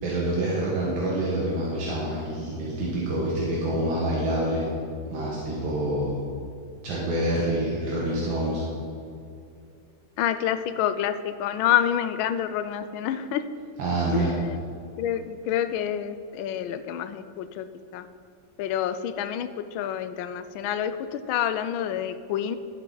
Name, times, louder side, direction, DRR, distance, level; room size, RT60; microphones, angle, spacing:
voice 1, 0.0-4.6 5.1-6.2 6.8-8.6 13.8-14.3, right 1 dB, 90° right, -5 dB, 2.2 m, -27 dB
voice 2, 10.2-13.4 14.1-14.6 15.0-17.7 17.9-18.0 18.6-22.6, left 10 dB, 85° left, 12 dB, 1.4 m, -28 dB
11.5 x 7.7 x 3.9 m, 2.5 s
omnidirectional pair, 2.1 m